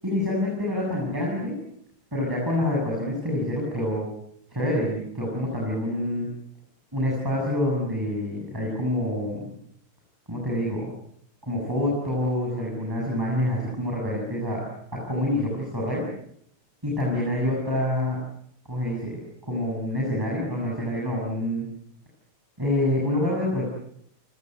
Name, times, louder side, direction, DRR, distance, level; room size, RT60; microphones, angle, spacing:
voice 1, 0.0-1.6 2.1-4.1 4.5-6.3 6.9-9.5 10.3-10.9 11.4-14.6 14.9-16.0 16.8-18.2 18.7-21.7 22.6-23.7, left 1 dB, 10° right, -3 dB, 7.8 m, -27 dB
28.5 x 21.0 x 7.9 m, 0.69 s
omnidirectional pair, 2.3 m